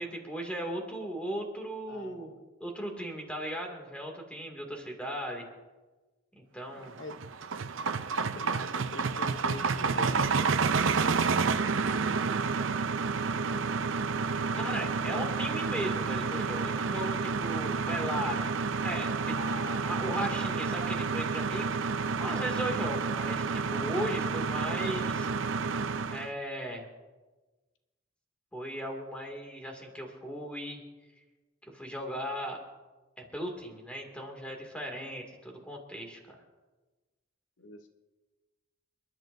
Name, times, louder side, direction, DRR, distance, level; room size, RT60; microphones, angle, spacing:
voice 1, 0.0-2.3 2.6-5.4 6.4-7.0 14.5-25.3 26.1-26.9 28.5-30.8 31.6-32.6 33.2-36.4, equal, 5° left, 2 dB, 2.4 m, -37 dB
voice 2, 1.9-2.5 7.0-7.2 8.1-11.8 13.3-13.9 14.5-15.2 19.3-19.9 37.6-37.9, left 3 dB, 75° left, 7 dB, 0.9 m, -46 dB
sound 1, 6.9-26.3, right 5 dB, 85° right, 0.6 m, -30 dB
28.5 x 11.0 x 2.7 m, 1.2 s
head